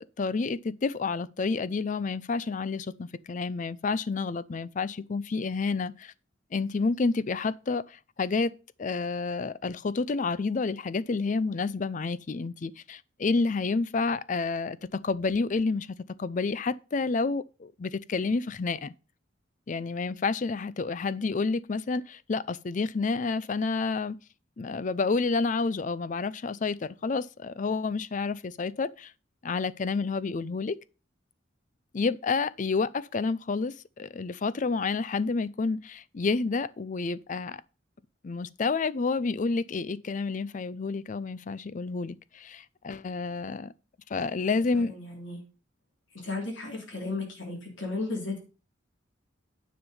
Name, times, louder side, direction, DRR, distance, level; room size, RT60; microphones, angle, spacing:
voice 1, 0.0-6.1 6.5-8.5 8.8-18.9 19.7-24.2 24.6-29.1 29.4-30.8 31.9-37.6 38.2-43.7 44.1-44.9, left 4 dB, 40° left, 0.4 m, -29 dB
voice 2, 44.5-45.4 46.1-48.4, left 3 dB, 75° left, 3.2 m, -35 dB
9.8 x 5.3 x 5.4 m
head